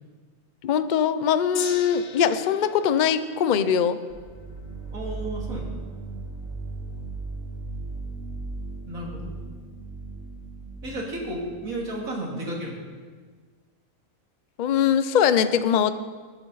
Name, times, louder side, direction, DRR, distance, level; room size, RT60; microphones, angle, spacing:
voice 1, 0.6-4.0 14.6-15.9, left 8 dB, 55° left, 12 dB, 0.5 m, -22 dB
Gong, 1.5-7.9 8.7-8.8, left 7 dB, 80° left, 1.3 m, -42 dB
sound 1, 4.1-11.8, right 3 dB, 55° right, 1.8 m, -37 dB
voice 2, 4.9-5.7 8.9-9.3 10.8-12.8, right 1 dB, 85° right, -2 dB, 2.9 m, -33 dB
20.0 x 8.2 x 4.0 m, 1.5 s
omnidirectional pair, 1.4 m